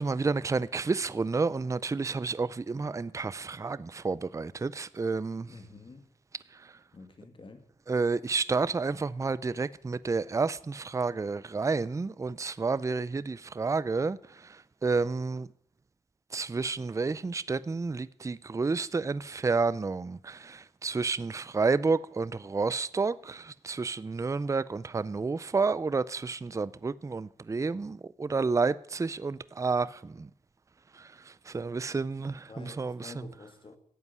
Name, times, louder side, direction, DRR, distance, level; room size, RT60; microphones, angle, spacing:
voice 1, 0.0-5.5 7.9-14.2 14.8-15.5 16.3-29.9 30.2-30.3 31.5-33.1, right 4 dB, 25° right, 0.5 m, -30 dB
voice 2, 5.5-6.1 6.9-7.6 32.5-33.8, left 3 dB, 40° left, 2.3 m, -48 dB
12.0 x 8.3 x 9.6 m
cardioid pair, 85°, 14 cm